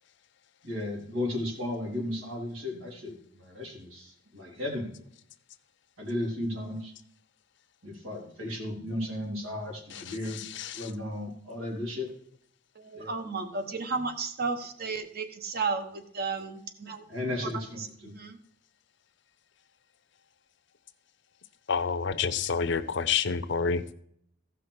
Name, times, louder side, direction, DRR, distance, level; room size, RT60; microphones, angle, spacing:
voice 1, 0.6-4.9 6.0-6.9 7.8-10.4 10.7-12.1 12.9-13.1 17.1-18.1, left 1 dB, 90° right, -1 dB, 3.6 m, -35 dB
voice 2, 10.5-10.9 21.7-23.9, left 5 dB, 65° left, 12 dB, 0.8 m, -28 dB
voice 3, 12.7-17.0 18.1-18.4, right 4 dB, 50° right, 7 dB, 1.3 m, -33 dB
15.5 x 5.9 x 4.9 m, 0.66 s
head